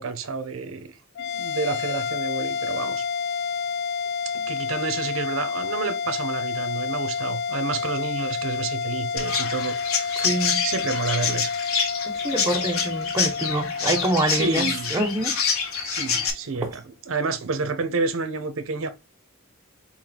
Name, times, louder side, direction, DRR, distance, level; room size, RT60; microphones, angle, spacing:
voice 1, 0.0-3.0 4.2-11.6 14.3-14.9 15.8-18.9, right 4 dB, 70° right, 0.6 m, -30 dB
sound 1, 1.1-15.7, left 6 dB, 55° left, 0.5 m, -29 dB
Chirp tweet, 9.2-16.3, left 6 dB, 80° left, 1.0 m, -27 dB
voice 2, 10.2-10.6 12.1-15.3 16.6-16.7, right 1 dB, 15° right, 0.8 m, -26 dB
4.2 x 3.1 x 3.8 m
head